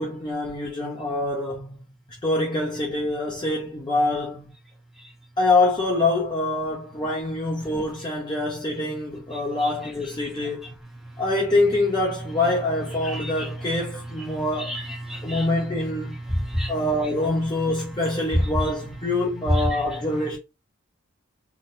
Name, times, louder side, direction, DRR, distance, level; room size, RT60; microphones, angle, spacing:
voice 1, 0.0-1.8 2.2-4.5 5.4-10.7 11.2-14.8 15.2-16.2 16.7-20.4, left 2 dB, 20° left, 0.4 m, -25 dB
voice 2, 13.0-13.5 14.6-15.5 16.3-16.7 19.5-19.7, equal, ahead, 0.8 m, -28 dB
2.9 x 2.1 x 2.6 m
head